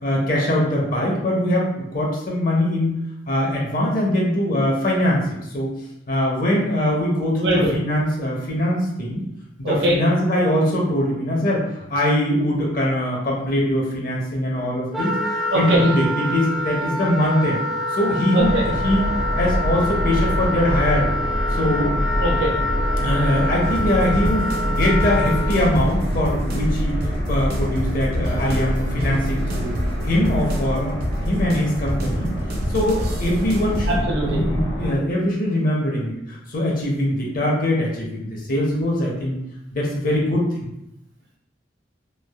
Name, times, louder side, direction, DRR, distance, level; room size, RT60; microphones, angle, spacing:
voice 1, 0.0-2.9 3.3-5.2 5.5-5.7 6.1-9.2 9.6-11.6 11.9-15.1 15.5-17.6 17.9-18.6 18.8-19.0 19.4-21.1 21.5-22.1 23.0-26.9 27.3-29.8 30.0-30.9 31.2-32.3 32.7-39.4 39.7-40.4, left 1 dB, 50° left, -2 dB, 0.5 m, -22 dB
voice 2, 7.3-7.7 9.6-10.0 15.5-16.0 18.3-18.6 22.2-22.5 33.9-34.4, right 1 dB, 75° right, -4 dB, 0.9 m, -21 dB
Wind instrument woodwind instrument, 14.9-25.6, left 1 dB, 5° right, 0.4 m, -26 dB
sound 1, 18.4-34.9, equal, 75° left, 0.8 m, -26 dB
sound 2, 23.6-34.0, equal, 50° right, 0.5 m, -28 dB
3.2 x 2.3 x 2.3 m, 0.84 s
head